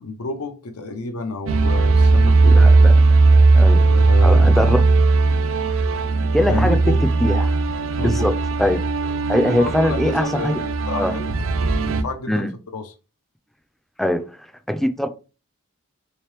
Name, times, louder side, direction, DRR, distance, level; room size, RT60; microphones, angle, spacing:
voice 1, 0.0-2.7 3.8-4.5 6.4-7.0 8.0-8.3 9.5-11.3 11.9-12.9, left 2 dB, 90° left, 0.6 m, -30 dB
sound 1, 1.5-12.0, right 3 dB, 65° right, 0.4 m, -17 dB
voice 2, 2.5-2.9 3.5-3.8 4.2-4.8 6.3-6.8 7.2-7.5 8.0-8.3 8.6-8.8 9.3-10.5 11.0-11.1 12.3-12.5 14.0-14.2 14.7-15.1, left 1 dB, ahead, 0.3 m, -21 dB
3.6 x 2.9 x 3.3 m
head